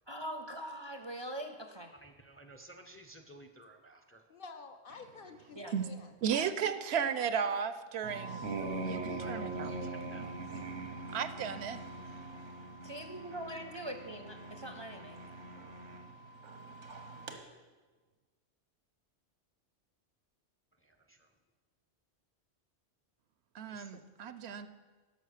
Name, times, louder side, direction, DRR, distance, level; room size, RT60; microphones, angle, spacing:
voice 1, 0.1-1.9 5.5-5.7 12.8-15.2, right 1 dB, 30° right, 5 dB, 0.5 m, -42 dB
voice 2, 1.9-4.2 9.2-10.4 20.8-21.3 23.7-23.9, right 2 dB, 15° left, 6 dB, 0.5 m, -55 dB
voice 3, 4.3-6.1 7.5-7.6 8.4-9.3 10.5-10.7 23.9-24.0, left 4 dB, 55° left, 7 dB, 0.8 m, -52 dB
voice 4, 6.2-8.4 8.8-9.8 11.1-11.8 23.5-24.7, right 7 dB, 70° right, 12 dB, 0.8 m, -34 dB
sound 1, 8.0-17.4, right 3 dB, 90° right, 1.3 m, -42 dB
11.0 x 6.2 x 6.5 m, 1.3 s
omnidirectional pair, 1.2 m